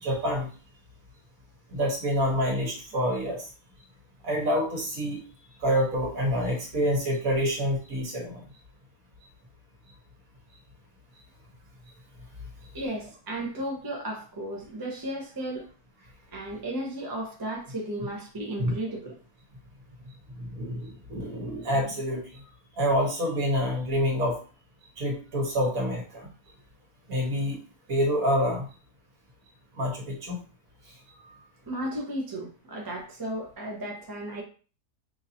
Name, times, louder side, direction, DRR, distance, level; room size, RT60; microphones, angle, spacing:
voice 1, 0.0-0.5 1.7-3.5 4.2-5.2 5.6-8.4 18.6-18.7 20.4-22.2 22.8-24.4 25.0-26.3 27.1-27.6 27.9-28.7 29.7-30.4 31.2-31.3, equal, 55° right, -1 dB, 1.7 m, -27 dB
voice 2, 12.7-15.6 16.3-19.2 31.7-34.4, right 1 dB, 20° right, -1 dB, 0.6 m, -34 dB
5.6 x 2.7 x 2.8 m, 0.38 s
omnidirectional pair, 1.8 m